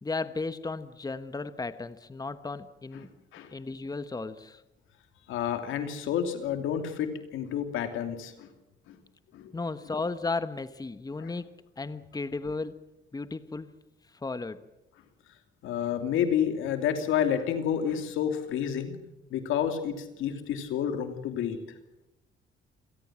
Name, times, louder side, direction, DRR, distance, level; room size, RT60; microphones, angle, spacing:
voice 1, 0.0-3.1 3.5-4.6 9.5-11.5 11.8-12.7 13.1-13.7 14.2-14.6, left 3 dB, 20° left, 12 dB, 1.2 m, -34 dB
voice 2, 5.3-8.5 8.9-9.0 9.3-9.5 11.2-11.3 15.6-18.9 19.3-21.6, left 9 dB, 90° left, 7 dB, 2.8 m, -29 dB
28.0 x 18.0 x 7.5 m, 0.97 s
cardioid pair, 90°, 20 cm